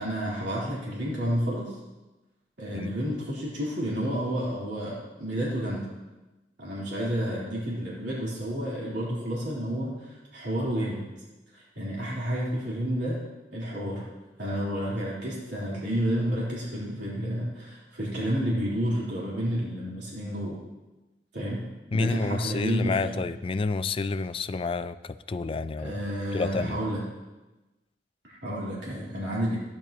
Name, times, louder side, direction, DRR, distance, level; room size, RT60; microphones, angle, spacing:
voice 1, 0.0-1.8 2.6-5.9 6.6-11.1 11.5-13.2 13.5-14.1 14.4-20.6 21.3-23.2 25.8-27.0 28.2-29.6, equal, 80° right, -7 dB, 3.6 m, -30 dB
voice 2, 21.9-25.9 26.3-26.8, left 4 dB, 30° left, 13 dB, 0.4 m, -29 dB
15.5 x 10.5 x 3.0 m, 1.1 s
head